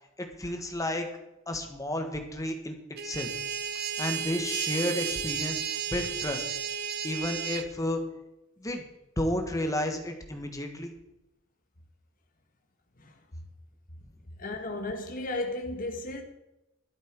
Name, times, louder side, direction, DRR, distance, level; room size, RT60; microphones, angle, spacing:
voice 1, 0.4-1.1 1.5-2.8 3.0-3.3 4.0-6.4 7.0-8.0 8.6-8.8 9.2-10.9, left 1 dB, 15° left, 1.7 m, -31 dB
sound 1, 3.0-7.7, right 7 dB, 55° right, 0.8 m, -33 dB
voice 2, 14.4-16.2, left 2 dB, 45° left, 1.5 m, -34 dB
12.5 x 10.5 x 4.7 m
head